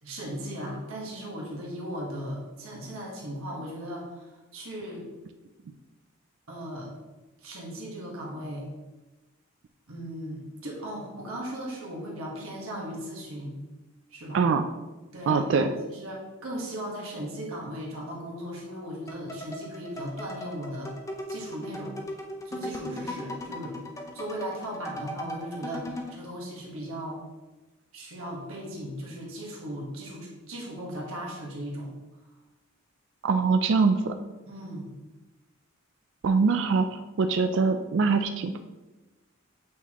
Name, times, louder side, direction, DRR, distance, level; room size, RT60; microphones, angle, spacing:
voice 1, 0.0-5.0 6.5-6.9 7.4-8.6 9.9-13.5 14.1-14.4 15.1-21.0 21.3-22.0 22.4-23.8 24.1-27.2 27.9-31.9 34.5-34.9, equal, 70° right, -3 dB, 1.4 m, -37 dB
voice 2, 15.3-15.7 33.2-34.2 36.2-38.6, right 4 dB, 55° right, 7 dB, 0.3 m, -23 dB
sound 1, 19.1-26.2, left 1 dB, 15° left, 0.5 m, -38 dB
8.3 x 4.1 x 3.0 m, 1.1 s
head